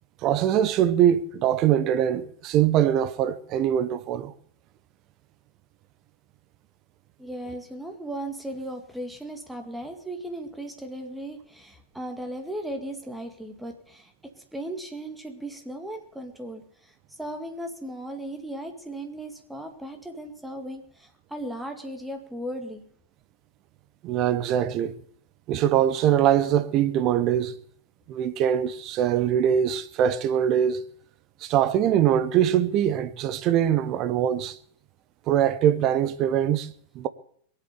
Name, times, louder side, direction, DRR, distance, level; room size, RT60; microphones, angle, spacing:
voice 1, 0.2-4.3 24.0-24.9 25.5-27.5 28.1-30.8 31.4-34.6 35.3-37.1, right 10 dB, 35° right, 1.0 m, -23 dB
voice 2, 7.2-14.1 14.5-16.9 17.2-22.8 34.4-34.6, right 1 dB, 5° right, 2.2 m, -36 dB
21.5 x 8.2 x 7.0 m
figure-of-eight pair, 90°, 0 cm